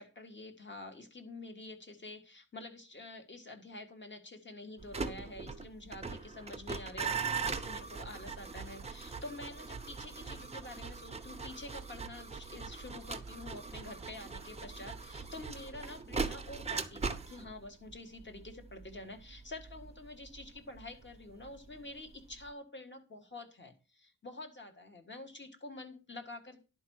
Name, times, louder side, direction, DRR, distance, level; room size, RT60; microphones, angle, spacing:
voice 1, 0.0-26.6, left 2 dB, 30° left, 6 dB, 1.6 m, -48 dB
sound 1, 4.8-21.8 22.1-22.5, right 5 dB, 20° right, 0.7 m, -41 dB
11.0 x 4.6 x 6.3 m, 0.32 s
wide cardioid pair, 145°, 36 cm